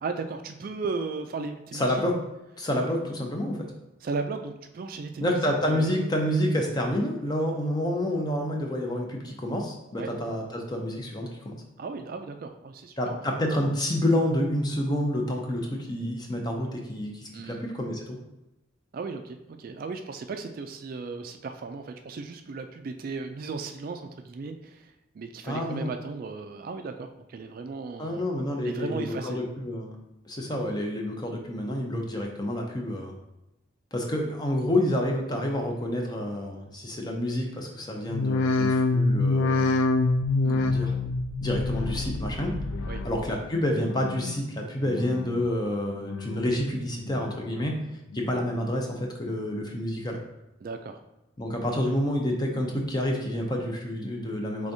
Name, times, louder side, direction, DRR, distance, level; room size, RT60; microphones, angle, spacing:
voice 1, 0.0-2.0 4.0-6.0 10.0-10.1 11.8-13.2 17.3-17.6 18.9-28.2 28.6-29.4 40.4-40.7 42.9-43.0 50.6-51.0, right 4 dB, 45° right, 6 dB, 0.3 m, -36 dB
voice 2, 1.7-2.2 2.6-3.7 5.2-11.6 13.0-18.2 25.4-25.9 28.0-30.0 30.2-33.1 33.9-39.8 40.6-40.9 41.4-42.5 43.0-50.2 51.4-54.7, left 1 dB, 20° left, 1 dB, 0.6 m, -28 dB
sound 1, 38.1-43.4 43.7-44.3 44.8-45.5 45.9-46.6 47.0-47.7 48.1-48.7 49.2-49.3, left 3 dB, 90° left, 0.4 m, -27 dB
4.9 x 3.4 x 2.7 m, 0.94 s
head